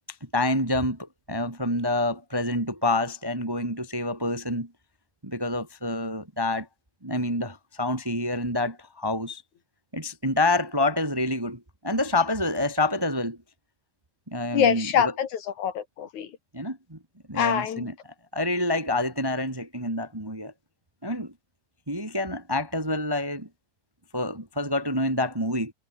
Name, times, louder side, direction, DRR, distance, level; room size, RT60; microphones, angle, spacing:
voice 1, 0.3-4.7 5.2-6.7 7.0-9.4 9.9-13.4 14.3-15.1 16.5-17.0 17.3-17.9 18.3-20.5 21.0-21.3 21.9-23.5 24.1-25.7, left 1 dB, 10° right, 1.5 m, -27 dB
voice 2, 14.5-16.3 17.4-17.8, left 8 dB, 75° left, 3.4 m, -25 dB
omnidirectional pair, 3.5 m